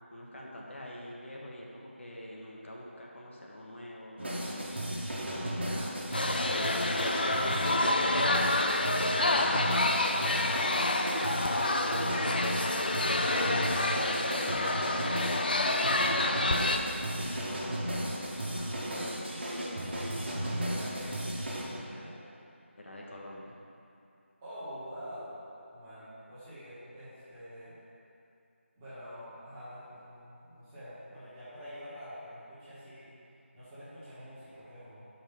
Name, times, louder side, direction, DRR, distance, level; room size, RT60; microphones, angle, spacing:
voice 1, 0.1-4.6 5.4-6.0 6.6-8.2 11.2-12.0 12.8-15.4 15.7-17.8 18.4-19.7 22.8-23.6, left 1 dB, 65° left, -3 dB, 1.3 m, -45 dB
sound 1, 4.2-21.6, right 1 dB, 55° right, 1.4 m, -34 dB
sound 2, 6.1-16.8, left 2 dB, 45° left, 0.4 m, -28 dB
voice 2, 7.8-8.3 20.5-22.2 24.4-25.3 25.7-27.8 28.7-33.1 33.5-35.1, equal, 10° right, -14 dB, 1.5 m, -46 dB
6.0 x 5.4 x 5.2 m, 2.8 s
figure-of-eight pair, 170°, 7 cm